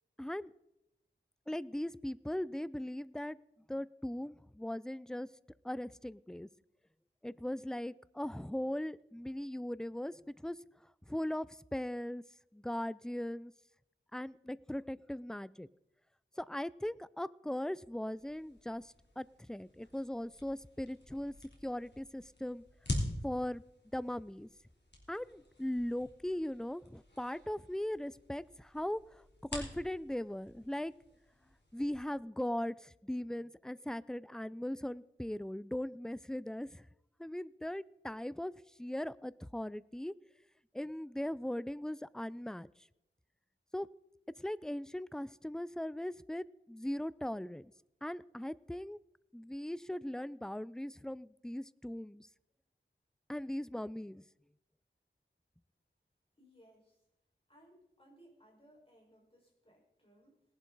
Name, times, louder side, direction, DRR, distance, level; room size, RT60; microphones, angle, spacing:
voice 1, 0.2-0.5 1.5-3.4 3.7-5.3 5.6-6.5 7.2-10.6 11.1-12.2 12.5-13.5 14.1-15.7 16.4-21.4 21.6-22.6 23.2-23.6 23.9-24.5 25.1-29.2 29.5-30.9 31.7-36.8 37.2-38.5 38.8-40.1 40.7-42.7 43.7-43.9 44.4-47.7 48.0-49.0 49.3-52.3 53.3-54.2, left 1 dB, 5° left, 18 dB, 0.4 m, -39 dB
sound 1, 18.2-32.0, left 1 dB, 60° left, 3.4 m, -46 dB
voice 2, 56.4-57.0 57.5-60.4, equal, 30° left, -1 dB, 5.1 m, -63 dB
19.0 x 11.0 x 4.0 m, 0.85 s
wide cardioid pair, 60°, 20 cm